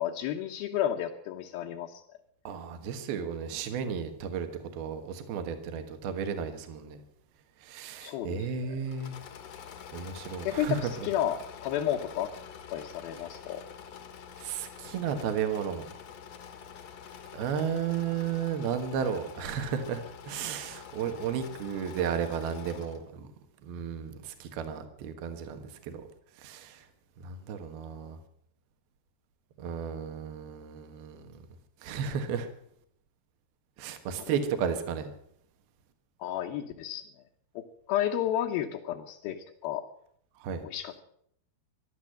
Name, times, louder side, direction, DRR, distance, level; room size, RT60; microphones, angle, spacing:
voice 1, 0.0-2.0 8.0-8.5 10.4-12.3 12.7-13.6 36.2-37.1 37.6-39.8 40.6-41.0, left 11 dB, 75° left, 1 dB, 2.8 m, -32 dB
voice 2, 2.4-4.5 4.7-7.0 7.6-9.2 9.9-11.1 14.4-15.9 17.3-23.3 23.6-26.0 26.4-26.9 27.2-28.2 29.6-31.3 31.8-32.5 33.8-35.1 40.4-40.6, right 7 dB, 75° right, 7 dB, 3.2 m, -33 dB
Engine / Mechanisms, 8.8-23.1, left 7 dB, 55° left, 2.0 m, -46 dB
15.5 x 12.0 x 7.8 m, 0.70 s
omnidirectional pair, 4.6 m